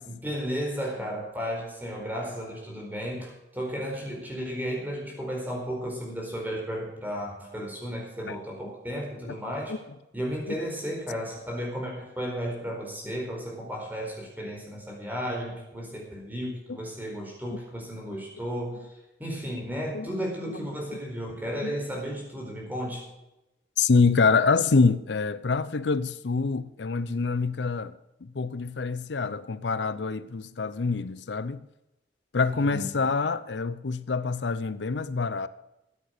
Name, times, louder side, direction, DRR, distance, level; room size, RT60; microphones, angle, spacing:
voice 1, 0.1-9.7 10.1-18.9 19.2-23.0 32.4-32.9, equal, 10° right, 4.4 m, -34 dB
voice 2, 23.8-27.9 28.2-31.6 32.3-35.5, left 4 dB, 85° left, 0.6 m, -25 dB
14.0 x 9.4 x 6.5 m
head